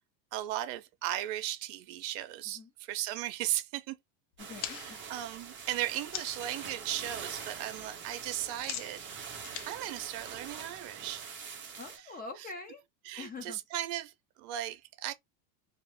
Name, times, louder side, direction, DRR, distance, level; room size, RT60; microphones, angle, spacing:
voice 1, 0.3-3.9 4.7-9.0 9.6-11.3 13.1-15.1, right 13 dB, 60° right, 0.7 m, -36 dB
sound 1, 4.4-6.5 6.9-7.4 7.6-10.9, left 11 dB, 60° left, 0.6 m, -44 dB
voice 2, 4.4-5.0 11.8-12.8 13.2-13.6, left 3 dB, 20° left, 0.5 m, -44 dB
sound 2, 4.4-12.0, right 6 dB, 25° right, 0.7 m, -44 dB
2.0 x 2.0 x 3.0 m
supercardioid pair, 110°, 49 cm